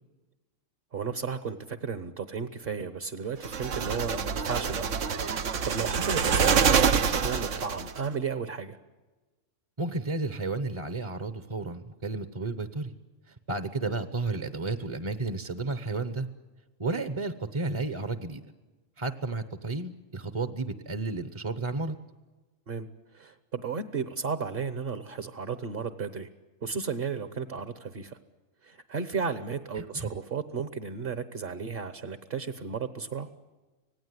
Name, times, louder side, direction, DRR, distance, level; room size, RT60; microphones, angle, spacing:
voice 1, 0.9-4.9 5.3-8.8 22.7-22.9 23.1-26.3 26.6-28.2 28.6-33.3, right 6 dB, 45° right, 10 dB, 1.2 m, -34 dB
sound 1, 3.4-8.0, right 6 dB, 75° right, 1.3 m, -26 dB
voice 2, 9.8-12.9 13.3-16.3 16.8-18.4 19.0-22.0 29.8-30.1, right 3 dB, 25° right, 10 dB, 0.8 m, -32 dB
25.5 x 18.5 x 9.6 m, 1.3 s
omnidirectional pair, 1.3 m